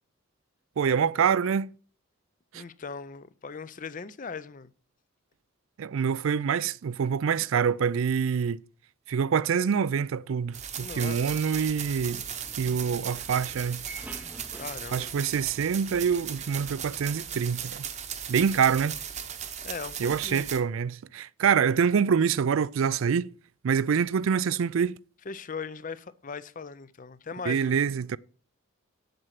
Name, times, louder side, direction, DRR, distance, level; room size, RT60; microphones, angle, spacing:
voice 1, 0.8-1.7 2.5-2.6 5.8-8.6 9.1-12.2 12.6-13.8 14.9-17.8 18.3-19.0 20.0-23.3 23.6-24.9 27.5-28.2, right 7 dB, 70° right, 0.4 m, -26 dB
voice 2, 2.5-4.7 10.8-11.7 14.6-15.3 19.6-20.5 25.3-27.8, left 5 dB, 40° left, 0.5 m, -39 dB
sound 1, 10.5-20.6, right 8 dB, 35° right, 0.9 m, -37 dB
sound 2, 11.7-17.2, right 1 dB, 5° right, 0.5 m, -49 dB
7.8 x 7.8 x 5.8 m
head